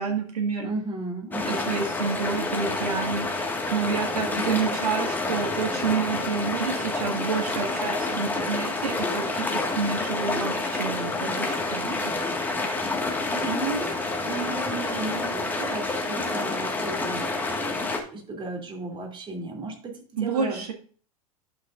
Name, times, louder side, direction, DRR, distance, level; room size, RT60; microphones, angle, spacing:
voice 1, 0.0-0.7 1.5-3.3 3.7-12.1 20.2-20.7, right 5 dB, 85° right, 2 dB, 1.9 m, -29 dB
voice 2, 0.6-1.7 4.3-4.8 13.4-13.9 14.2-17.3 18.1-20.7, right 3 dB, 25° right, 2 dB, 2.9 m, -34 dB
sound 1, 1.3-18.0, left 3 dB, 10° left, 1.7 m, -28 dB
11.5 x 6.1 x 2.5 m, 0.42 s
hypercardioid pair, 100°, 19 cm